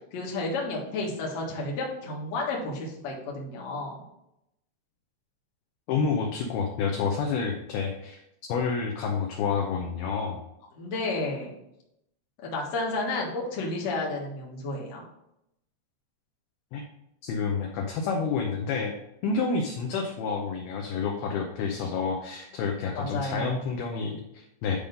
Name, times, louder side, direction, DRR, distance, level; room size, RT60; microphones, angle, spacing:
voice 1, 0.1-4.0 10.8-11.5 12.4-15.0 23.0-23.6, left 2 dB, 55° left, -3 dB, 2.1 m, -31 dB
voice 2, 5.9-8.2 8.5-10.4 16.7-16.8 17.2-19.0 19.2-24.8, left 5 dB, 80° left, 1 dB, 2.2 m, -29 dB
10.0 x 3.6 x 5.3 m, 0.83 s
omnidirectional pair, 5.3 m